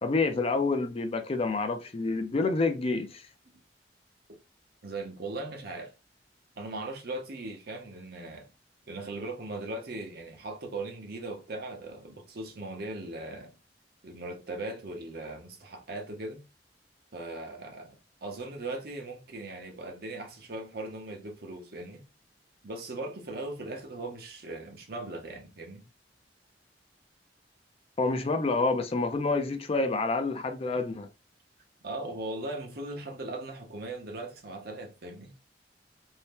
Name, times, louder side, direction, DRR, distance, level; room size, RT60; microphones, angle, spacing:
voice 1, 0.0-3.2 28.0-31.1, left 3 dB, 35° left, 0.4 m, -28 dB
voice 2, 4.8-5.9 6.6-8.5 8.9-13.5 14.0-16.4 17.1-22.0 22.6-25.8 31.8-35.3, right 2 dB, 60° right, 0.8 m, -39 dB
2.7 x 2.1 x 3.3 m
head